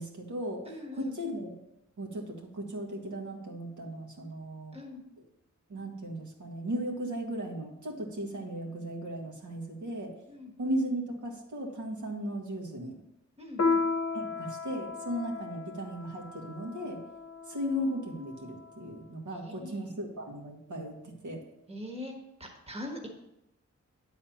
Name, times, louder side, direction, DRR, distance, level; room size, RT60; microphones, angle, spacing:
voice 1, 0.0-0.6 0.9-1.5 2.0-4.8 5.7-10.1 10.6-12.9 14.1-17.0 17.5-21.4, equal, 85° right, 0 dB, 2.0 m, -36 dB
voice 2, 0.7-1.2 4.7-5.0 10.3-10.5 13.4-13.8 19.4-20.0 21.7-22.1 22.4-23.1, left 1 dB, 20° right, 1 dB, 1.3 m, -42 dB
Piano, 13.6-18.5, left 4 dB, 60° left, 0.8 m, -34 dB
10.0 x 4.2 x 7.2 m, 0.86 s
wide cardioid pair, 180°, 29 cm